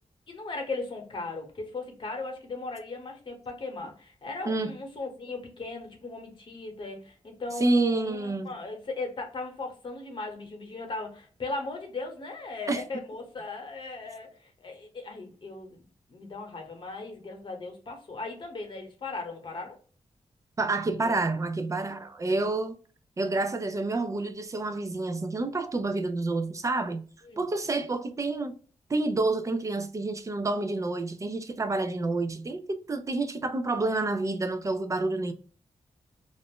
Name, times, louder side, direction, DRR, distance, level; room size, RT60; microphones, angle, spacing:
voice 1, 0.3-19.8 21.0-21.2 27.2-27.4 27.8-27.9, left 3 dB, 45° left, 0.9 m, -38 dB
voice 2, 4.4-4.8 7.6-8.5 12.7-12.8 20.6-22.8 23.2-27.0 27.4-28.5 28.9-35.3, right 2 dB, 25° right, 0.4 m, -28 dB
2.5 x 2.1 x 3.5 m
wide cardioid pair, 135°, 12 cm